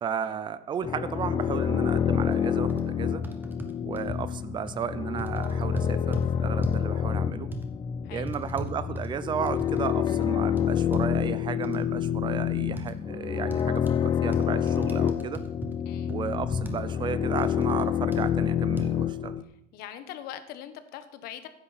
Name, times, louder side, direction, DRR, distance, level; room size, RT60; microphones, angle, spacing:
voice 1, 0.0-3.2 3.8-7.5 8.1-15.4 16.1-19.4, right 7 dB, 30° right, 14 dB, 0.6 m, -34 dB
sound 1, 0.8-19.4, left 9 dB, 25° left, 0.5 m, -28 dB
sound 2, 2.3-2.4 2.7-2.8 3.2-4.1 4.7-4.8 5.2-6.3 6.6-6.9 7.5-7.7 8.3-9.9 10.1-10.3 10.6-11.1 11.6-11.8 12.8-12.9 13.5-14.0 14.3-15.7 16.1-16.2 16.7-16.8 17.4-17.8 18.1-18.2 18.8-18.9, right 3 dB, 10° right, 1.1 m, -39 dB
voice 2, 19.7-21.5, left 11 dB, 75° left, 11 dB, 1.2 m, -42 dB
14.5 x 10.5 x 4.2 m, 0.78 s
cardioid pair, 170°, 16 cm